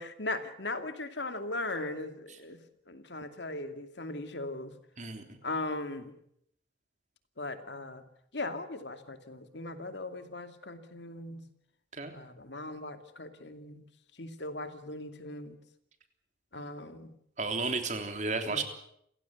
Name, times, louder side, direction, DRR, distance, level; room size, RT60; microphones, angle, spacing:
voice 1, 0.0-2.6 2.9-4.7 5.4-6.1 7.4-8.0 8.3-11.4 12.1-13.8 14.2-15.6 16.5-17.1 18.5-18.6, left 2 dB, 70° left, 8 dB, 2.5 m, -38 dB
voice 2, 5.0-5.4 11.9-12.1 17.4-18.6, right 3 dB, 40° right, 6 dB, 3.4 m, -33 dB
28.5 x 17.0 x 8.3 m, 0.72 s
head